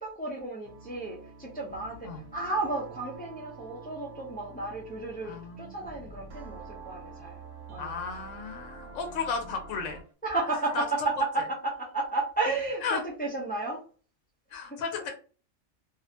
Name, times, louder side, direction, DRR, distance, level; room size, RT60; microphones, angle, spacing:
voice 1, 0.0-7.4 7.7-8.0 10.2-13.8 14.6-14.8, right 3 dB, 15° left, -1 dB, 0.3 m, -33 dB
sound 1, 0.6-10.1, right 4 dB, 90° right, 1.0 m, -47 dB
voice 2, 5.2-5.9 7.8-10.0 10.7-10.8 12.8-13.0 14.5-15.1, left 5 dB, 90° left, 3 dB, 0.9 m, -34 dB
2.6 x 2.1 x 2.6 m, 0.37 s
omnidirectional pair, 1.3 m